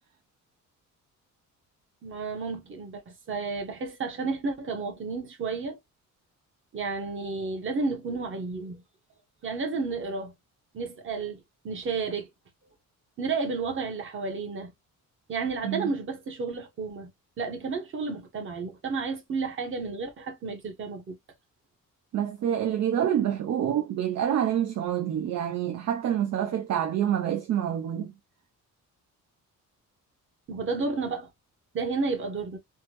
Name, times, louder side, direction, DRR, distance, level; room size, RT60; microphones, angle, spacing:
voice 1, 2.0-3.0 3.3-5.8 6.7-8.8 9.4-10.3 10.7-12.3 13.2-14.7 15.3-17.1 17.4-21.2 30.5-31.3 31.7-32.6, right 4 dB, 40° right, 1.0 m, -32 dB
voice 2, 22.1-28.1, right 10 dB, 55° right, 0.5 m, -27 dB
3.4 x 2.1 x 2.9 m
cardioid pair, 150°, 32 cm